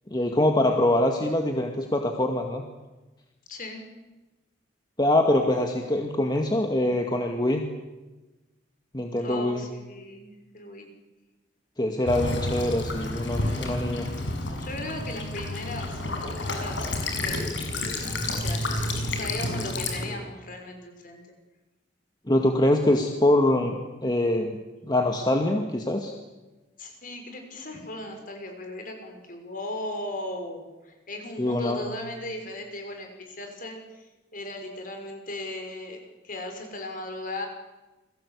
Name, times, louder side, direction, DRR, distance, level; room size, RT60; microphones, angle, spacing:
voice 1, 0.1-2.6 5.0-7.6 8.9-9.7 11.8-14.1 22.3-24.6 24.8-26.1 31.4-31.8, left 1 dB, 25° left, 3 dB, 2.2 m, -24 dB
voice 2, 3.5-3.9 9.2-10.9 14.6-21.2 26.8-36.0 36.2-37.5, left 1 dB, 50° left, 4 dB, 6.1 m, -37 dB
Child speech kid speaking / Bird vocalization bird call bird song / Stream, 12.1-20.0, left 2 dB, 80° left, 6.3 m, -30 dB
29.0 x 22.5 x 8.5 m, 1.1 s
head